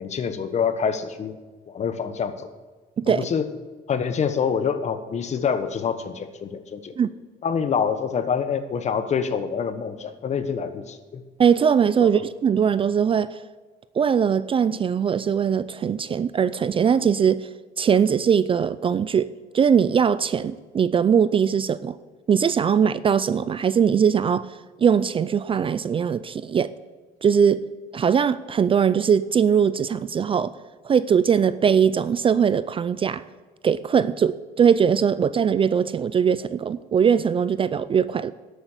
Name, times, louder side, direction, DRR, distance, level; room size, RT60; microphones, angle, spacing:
voice 1, 0.0-1.4 1.7-2.5 3.1-3.5 3.9-6.9 7.4-11.2 12.0-12.1, left 6 dB, 40° left, 10 dB, 1.1 m, -26 dB
voice 2, 11.4-13.4 14.0-17.5 17.8-22.0 22.3-26.7 27.2-27.7 27.9-30.5 30.8-33.2 33.6-38.3, right 7 dB, 30° right, 16 dB, 0.4 m, -21 dB
12.0 x 8.4 x 6.6 m, 1.3 s
cardioid pair, 110°, 17 cm